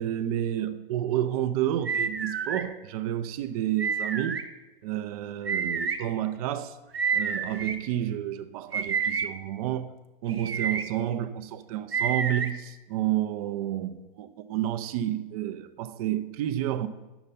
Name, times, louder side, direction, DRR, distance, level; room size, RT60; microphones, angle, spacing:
voice 1, 0.0-4.4 4.8-6.8 7.1-9.9 10.2-16.9, right 12 dB, 40° right, 0.6 m, -30 dB
sound 1, 1.9-2.6 3.8-4.4 5.5-6.0 6.9-7.8 8.7-9.3 10.3-10.8 11.9-12.5, right 6 dB, 85° right, 0.8 m, -28 dB
9.7 x 6.9 x 4.1 m
figure-of-eight pair, 110°, 29 cm